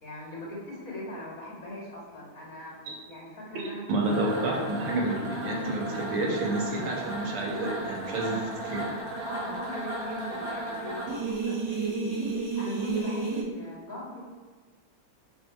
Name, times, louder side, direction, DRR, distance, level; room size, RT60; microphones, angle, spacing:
voice 1, 0.0-4.2 9.3-12.3 12.6-14.2, left 1 dB, 40° left, -4 dB, 2.1 m, -40 dB
voice 2, 3.5-8.9, right 2 dB, 85° right, -1 dB, 2.2 m, -30 dB
sound 1, 4.0-13.4, right 3 dB, 60° right, 2.0 m, -33 dB
6.0 x 5.1 x 4.5 m, 1.4 s
omnidirectional pair, 2.3 m